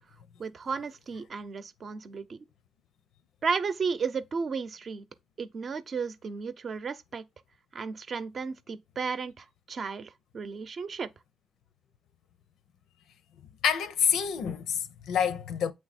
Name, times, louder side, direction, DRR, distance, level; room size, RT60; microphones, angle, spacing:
voice 1, 0.4-2.4 3.4-5.1 5.4-7.2 7.7-11.1, right 5 dB, 45° right, 0.7 m, -34 dB
voice 2, 13.6-15.7, left 8 dB, 80° left, 0.6 m, -27 dB
8.0 x 3.1 x 4.2 m
cardioid pair, 90°, 0 cm